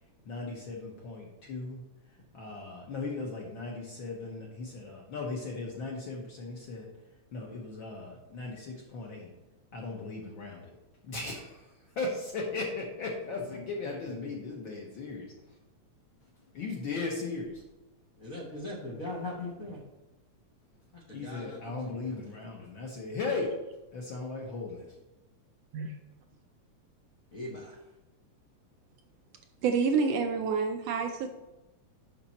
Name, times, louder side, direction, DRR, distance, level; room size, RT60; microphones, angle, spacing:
voice 1, 0.2-1.8 2.3-6.9 7.3-9.3 9.7-10.7 11.0-15.3 16.5-17.5 21.1-23.5 23.9-24.9, left 3 dB, 60° left, 1.3 m, -37 dB
voice 2, 18.2-19.8 20.9-22.2 27.3-27.8, left 2 dB, 80° left, 0.7 m, -40 dB
voice 3, 29.6-31.3, right 5 dB, 75° right, 1.5 m, -28 dB
7.2 x 5.9 x 4.2 m
omnidirectional pair, 3.3 m